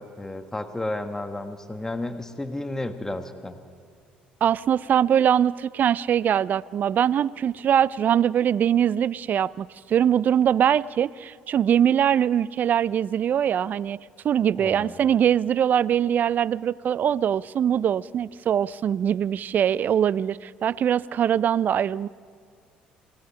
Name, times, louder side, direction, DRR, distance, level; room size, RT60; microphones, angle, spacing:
voice 1, 0.0-3.6 14.6-14.9, left 2 dB, 15° left, 9 dB, 1.4 m, -32 dB
voice 2, 4.4-14.0 14.2-22.1, right 9 dB, 50° right, 22 dB, 0.4 m, -22 dB
27.0 x 19.5 x 5.7 m, 2.1 s
hypercardioid pair, 55°, 4 cm